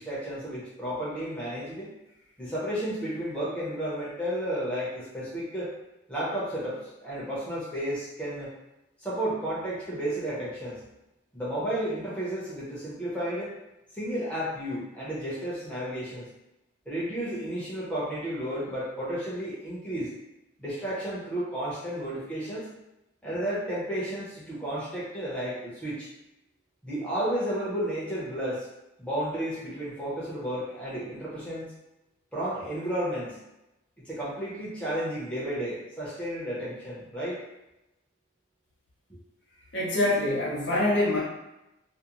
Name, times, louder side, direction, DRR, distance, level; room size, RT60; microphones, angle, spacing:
voice 1, 0.0-1.9 2.4-5.7 6.1-8.5 9.0-10.8 11.3-13.6 13.9-16.3 16.9-20.1 20.6-22.7 23.2-26.1 26.8-28.7 29.0-31.7 32.3-33.4 34.0-37.4, right 1 dB, 5° left, -9 dB, 0.6 m, -32 dB
voice 2, 39.7-41.2, left 1 dB, 70° left, -5 dB, 0.7 m, -25 dB
2.5 x 2.0 x 2.9 m, 0.93 s
head